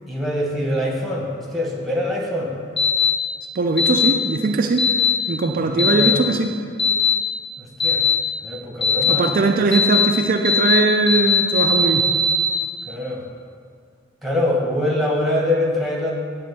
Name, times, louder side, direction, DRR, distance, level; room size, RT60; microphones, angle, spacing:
voice 1, 0.1-2.5 5.6-6.2 7.6-8.0 8.4-9.5 12.8-13.2 14.2-16.1, left 1 dB, ahead, -3 dB, 1.2 m, -24 dB
sound 1, 2.8-3.1 3.8-4.1 4.8-5.1 5.8-6.1 6.8-7.1 7.8-8.1 8.8-9.1 9.7-10.0 10.4-10.8 11.1-12.5, left 4 dB, 25° left, 2.1 m, -18 dB
voice 2, 3.6-4.8 5.3-6.5 9.1-12.0, right 3 dB, 50° right, 3 dB, 0.4 m, -20 dB
9.5 x 3.7 x 6.7 m, 2.1 s
head